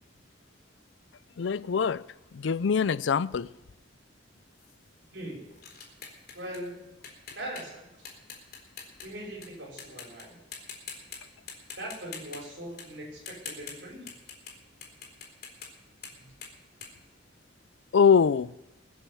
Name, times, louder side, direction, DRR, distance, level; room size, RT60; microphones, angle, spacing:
voice 1, 1.4-2.0 2.3-3.5 17.9-18.5, left 6 dB, 85° left, 0.4 m, -23 dB
sound 1, 4.6-9.5 9.8-10.2 10.5-11.2 11.5-14.5 14.8-17.8, left 6 dB, 55° left, 3.7 m, -45 dB
voice 2, 5.1-5.5 6.3-7.0 7.3-7.9 9.0-10.4 11.8-14.1, right 1 dB, 70° right, 5.3 m, -40 dB
21.0 x 7.2 x 7.1 m
head